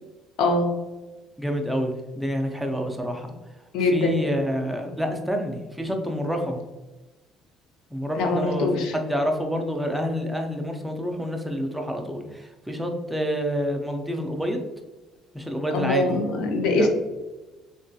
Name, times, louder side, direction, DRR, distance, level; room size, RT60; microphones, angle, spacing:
voice 1, 0.4-0.7 3.7-4.2 8.1-8.9 15.7-16.9, left 2 dB, 75° left, 3 dB, 0.6 m, -23 dB
voice 2, 1.4-3.3 3.9-6.6 7.9-14.6 15.3-16.2 16.8-16.9, equal, ahead, 3 dB, 0.3 m, -28 dB
3.7 x 2.2 x 2.6 m, 1.1 s
cardioid pair, 175°, 0 cm